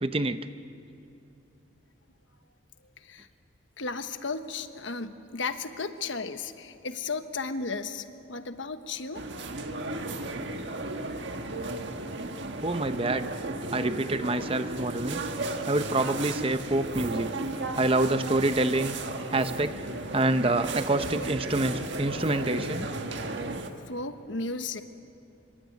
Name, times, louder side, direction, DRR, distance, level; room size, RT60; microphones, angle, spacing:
voice 1, 0.0-0.5 11.4-11.5 12.5-13.3 13.7-17.3 17.8-19.0 19.3-19.7 20.1-22.9, right 2 dB, 30° right, 10 dB, 0.7 m, -27 dB
voice 2, 3.0-3.3 3.8-9.2 23.9-24.8, left 4 dB, 70° left, 9 dB, 1.2 m, -34 dB
sound 1, 9.1-23.7, right 2 dB, 65° right, 1.6 m, -34 dB
25.5 x 24.0 x 9.4 m, 2.8 s
head